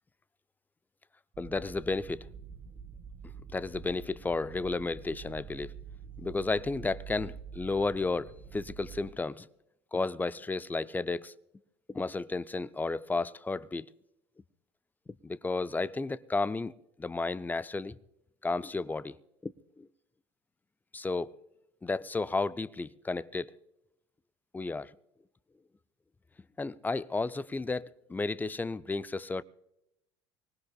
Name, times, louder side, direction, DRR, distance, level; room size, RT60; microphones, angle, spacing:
sound 1, 1.3-9.0, right 6 dB, 45° right, 1.9 m, -47 dB
voice 1, 1.4-2.3 3.5-5.7 6.2-9.5 9.9-11.3 11.9-13.9 15.2-16.7 17.0-18.0 18.4-19.2 19.4-19.9 20.9-21.3 21.8-23.5 24.5-24.9 26.6-29.4, left 3 dB, 10° left, 0.4 m, -33 dB
24.5 x 19.0 x 2.4 m
hypercardioid pair, 70°, 15 cm